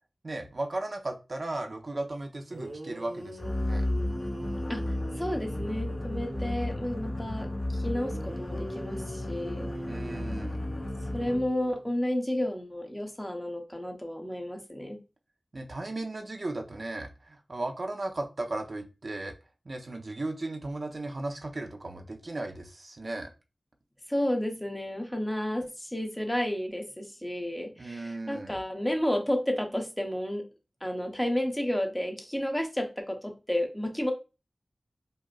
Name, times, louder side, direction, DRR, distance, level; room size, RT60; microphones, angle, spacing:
voice 1, 0.2-3.9 9.9-10.6 15.5-19.3 19.7-23.3 27.8-28.6, right 2 dB, 55° right, 4 dB, 0.5 m, -36 dB
sound 1, 2.2-2.3 2.5-6.7 7.9-11.9, right 1 dB, 70° right, 1.8 m, -42 dB
sound 2, 3.4-11.6, left 1 dB, 50° left, 0.8 m, -33 dB
voice 2, 5.2-9.7 11.1-15.0 24.1-30.4 30.8-34.1, left 1 dB, 10° left, 4 dB, 0.7 m, -31 dB
5.0 x 2.0 x 2.2 m, 0.29 s
wide cardioid pair, 75°, 0 cm